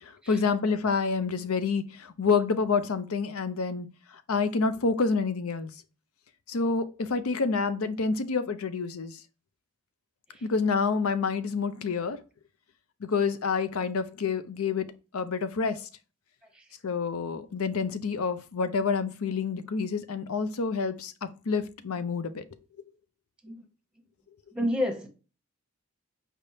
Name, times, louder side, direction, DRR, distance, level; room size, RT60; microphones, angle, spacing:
voice 1, 0.0-3.9 4.3-5.7 6.5-9.2 10.4-12.2 13.0-15.9 16.8-22.4, left 4 dB, 85° left, 0.6 m, -28 dB
voice 2, 24.5-25.1, left 1 dB, 5° right, 0.9 m, -28 dB
5.1 x 3.4 x 2.7 m
head